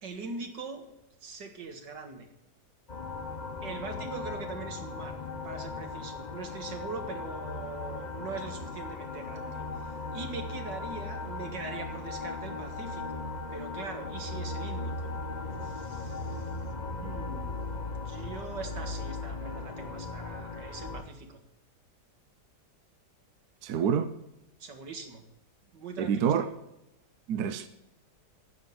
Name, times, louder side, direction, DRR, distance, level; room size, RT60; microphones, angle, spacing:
voice 1, 0.0-0.9 1.2-2.3 3.6-15.1 15.6-16.4 17.0-17.6 17.9-21.4 24.6-25.2 25.7-26.5, right 4 dB, 85° right, 2.3 m, -42 dB
sound 1, 2.9-21.0, left 3 dB, 30° left, 1.0 m, -37 dB
voice 2, 23.6-24.1 26.0-26.5 27.3-27.7, right 7 dB, 70° right, 1.2 m, -27 dB
10.0 x 7.6 x 9.3 m
omnidirectional pair, 1.9 m